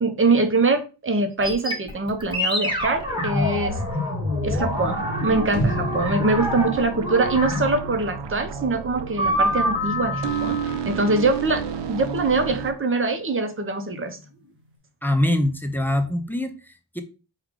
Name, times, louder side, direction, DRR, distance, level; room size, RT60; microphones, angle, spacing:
voice 1, 0.0-3.8 4.4-14.2, right 3 dB, 30° right, 6 dB, 0.7 m, -23 dB
sound 1, 1.4-8.0 9.2-11.7, left 1 dB, 10° right, 1.1 m, -27 dB
sound 2, 4.6-12.7, right 7 dB, 75° right, 0.6 m, -32 dB
sound 3, 5.5-7.7 8.0-8.1, right 1 dB, 40° left, 1.3 m, -29 dB
voice 2, 15.0-17.0, left 1 dB, 5° left, 5 dB, 0.4 m, -24 dB
4.9 x 2.4 x 3.6 m, 0.32 s
wide cardioid pair, 125°, 43 cm